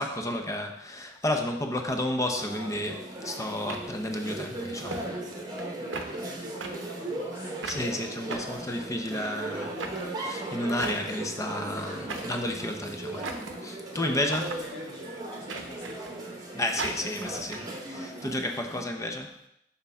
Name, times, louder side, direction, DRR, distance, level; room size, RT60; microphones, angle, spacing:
voice 1, 0.0-5.1 7.7-9.7 10.1-14.5 16.5-19.4, left 1 dB, 15° left, 4 dB, 0.7 m, -32 dB
sound 1, 2.3-18.8, right 1 dB, 20° right, 1.1 m, -38 dB
sound 2, 2.7-2.9 3.7-4.5 4.9-5.0 5.3-5.7 5.9-6.1 6.6-6.7 7.6-7.8 8.3-9.2 9.8-10.0 10.7-11.3 12.1-12.5 13.2-13.6 14.3-14.6 15.5-16.2 16.8-17.6, right 4 dB, 70° right, 0.7 m, -38 dB
voice 2, 5.8-7.7 8.3-8.7 9.1-9.3 10.9-11.5 13.9-17.0 18.2-18.3 18.6-18.8, left 1 dB, 70° left, -3 dB, 1.9 m, -48 dB
6.6 x 5.5 x 3.5 m, 0.78 s
head